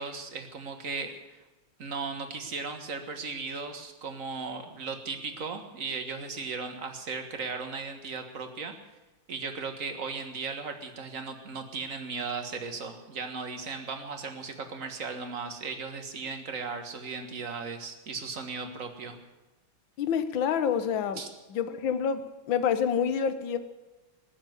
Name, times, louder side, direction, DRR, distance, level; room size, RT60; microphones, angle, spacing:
voice 1, 0.0-1.4 1.8-8.7 9.3-19.2 21.2-21.3, right 4 dB, 40° right, 6 dB, 1.8 m, -36 dB
voice 2, 20.0-21.2 21.5-23.6, left 7 dB, 70° left, 11 dB, 1.7 m, -27 dB
20.0 x 7.3 x 9.6 m, 1.1 s
omnidirectional pair, 2.3 m